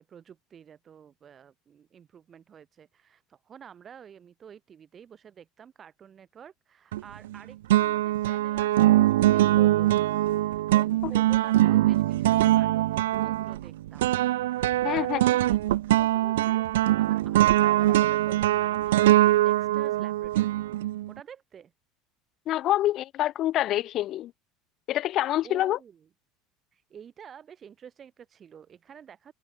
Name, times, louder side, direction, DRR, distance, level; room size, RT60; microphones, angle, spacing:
voice 1, 0.0-9.9 10.4-14.1 14.8-20.6 21.1-21.7 25.4-26.0 26.7-29.3, right 8 dB, 35° right, 3.0 m, -49 dB
sound 1, 6.9-7.4 7.7-21.1, right 15 dB, 75° right, 0.3 m, -22 dB
voice 2, 14.8-15.3 22.5-24.3 24.9-25.8, left 13 dB, 50° left, 0.4 m, -26 dB
hypercardioid pair, 75°, 0 cm